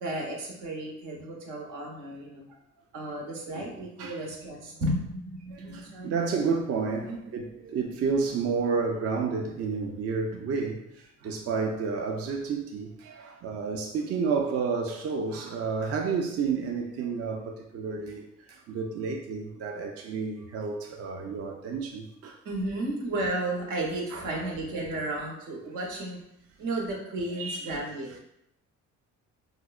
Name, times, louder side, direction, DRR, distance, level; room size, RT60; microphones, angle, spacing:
voice 1, 0.0-2.6 2.9-6.2 7.0-7.2 18.7-18.8 20.4-20.7 21.3-21.4 22.4-26.2 26.6-28.2, right 1 dB, 90° right, 0.9 m, -33 dB
voice 2, 5.5-10.8 11.2-18.3 18.7-22.4 24.1-24.2 27.3-27.7, right 5 dB, 55° right, 0.5 m, -30 dB
4.6 x 2.1 x 2.3 m
cardioid pair, 90°, 30 cm